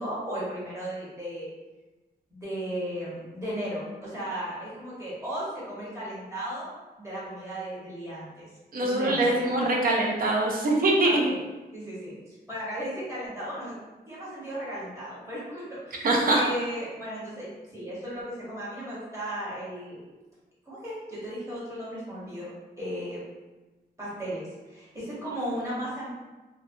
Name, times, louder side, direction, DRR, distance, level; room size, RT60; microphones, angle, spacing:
voice 1, 0.0-1.5 2.3-8.5 8.8-9.5 11.0-11.4 11.7-13.8 14.1-20.0 20.6-22.5 22.8-23.2 24.0-26.1, equal, 15° right, -8 dB, 1.2 m, -35 dB
voice 2, 8.7-11.3 16.0-16.4, right 2 dB, 60° right, -1 dB, 0.6 m, -23 dB
2.9 x 2.1 x 2.7 m, 1.2 s
wide cardioid pair, 125°, 17 cm